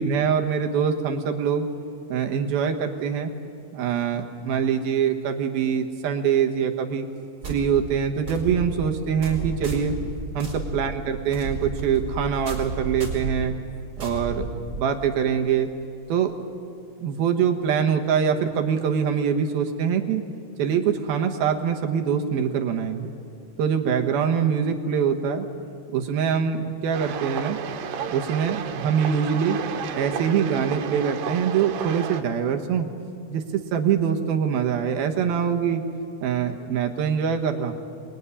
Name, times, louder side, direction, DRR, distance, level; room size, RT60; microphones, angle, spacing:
voice 1, 0.0-1.7 2.1-3.3 3.7-7.0 7.5-9.9 10.3-13.5 14.0-14.5 14.8-15.7 16.1-16.3 17.0-20.2 20.6-23.1 23.6-25.5 25.9-27.6 28.1-29.6 29.9-32.9 33.3-33.4 33.7-35.8 36.2-37.7, right 7 dB, 70° right, 4 dB, 3.1 m, -24 dB
sound 1, 7.4-15.1, right 3 dB, 30° right, 5.0 m, -33 dB
sound 2, 26.9-32.2, right 7 dB, 90° right, 3.4 m, -32 dB
27.0 x 21.5 x 9.8 m, 2.5 s
omnidirectional pair, 4.6 m